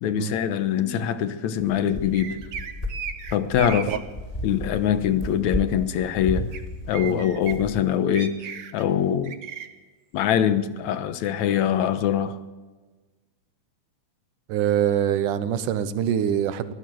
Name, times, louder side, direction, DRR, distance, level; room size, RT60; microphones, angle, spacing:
voice 1, 0.0-2.4 3.3-3.9 4.4-6.5 6.9-8.4 8.7-9.4 10.1-12.4, left 9 dB, 70° left, 2.3 m, -23 dB
sound 1, 1.6-8.0, equal, 15° left, 2.2 m, -34 dB
sound 2, 2.1-4.0 6.5-6.6 6.9-7.5 8.1-8.8 9.2-9.7, right 8 dB, 50° right, 1.9 m, -35 dB
voice 2, 14.5-16.7, right 9 dB, 90° right, 2.6 m, -24 dB
24.0 x 15.5 x 7.8 m
omnidirectional pair, 3.5 m